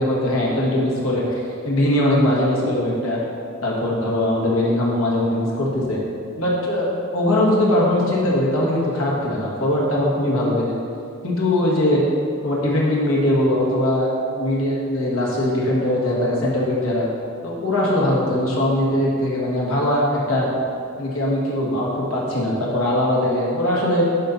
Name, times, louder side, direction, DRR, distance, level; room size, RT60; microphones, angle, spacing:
voice 1, 0.0-1.4 1.6-3.2 3.6-6.0 6.4-10.7 11.2-12.0 12.4-17.1 17.4-20.5 21.0-24.1, left 1 dB, 75° left, -4 dB, 1.7 m, -21 dB
11.5 x 4.3 x 4.1 m, 2.5 s
head